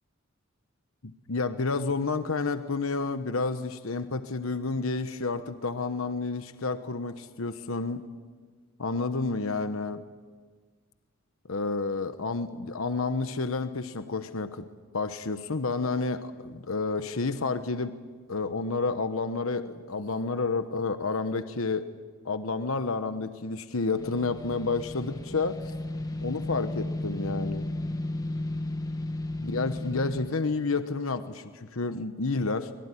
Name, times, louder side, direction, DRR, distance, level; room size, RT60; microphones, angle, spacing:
voice 1, 1.0-8.0 8.8-10.0 11.5-14.6 14.9-17.9 18.3-21.9 22.2-25.6 26.2-27.7 29.4-32.7, left 3 dB, 85° left, 10 dB, 1.1 m, -30 dB
sound 1, 24.0-30.3, left 1 dB, 20° left, 1.5 m, -34 dB
25.0 x 22.5 x 9.9 m, 1.5 s
head